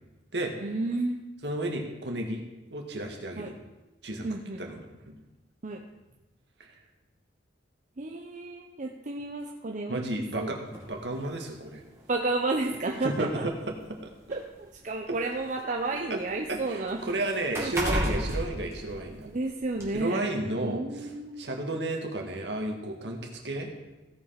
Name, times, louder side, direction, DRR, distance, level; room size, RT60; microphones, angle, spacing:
voice 1, 0.6-1.2 3.4-3.5 4.2-4.8 5.6-5.8 8.0-10.6 12.1-13.5 14.3-17.0 17.5-18.3 19.2-20.3 20.6-21.5, right 2 dB, 45° right, 2 dB, 0.7 m, -32 dB
voice 2, 1.4-2.4 2.7-3.6 4.0-4.3 4.6-5.2 6.6-6.7 9.9-11.8 13.0-13.5 14.0-14.1 16.1-16.2 16.5-19.3 19.9-20.8 21.4-23.7, right 2 dB, 65° right, 2 dB, 1.9 m, -32 dB
sound 1, 10.7-10.9 12.0-12.1 12.5-12.6 13.6-15.6 15.9-19.4 19.8-19.9, equal, 15° right, 2.6 m, -33 dB
16.5 x 5.6 x 5.8 m, 1.0 s
head